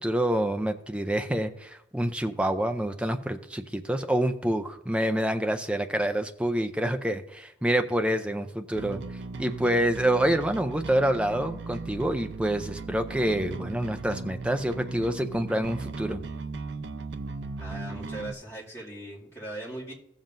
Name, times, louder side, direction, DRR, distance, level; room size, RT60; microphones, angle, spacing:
voice 1, 0.0-16.2, right 1 dB, 5° right, 7 dB, 0.4 m, -27 dB
Bass guitar, 8.7-18.3, right 3 dB, 65° right, 0.5 m, -37 dB
voice 2, 17.6-19.9, right 1 dB, 15° left, -7 dB, 2.3 m, -39 dB
15.0 x 7.3 x 2.6 m, 0.78 s
head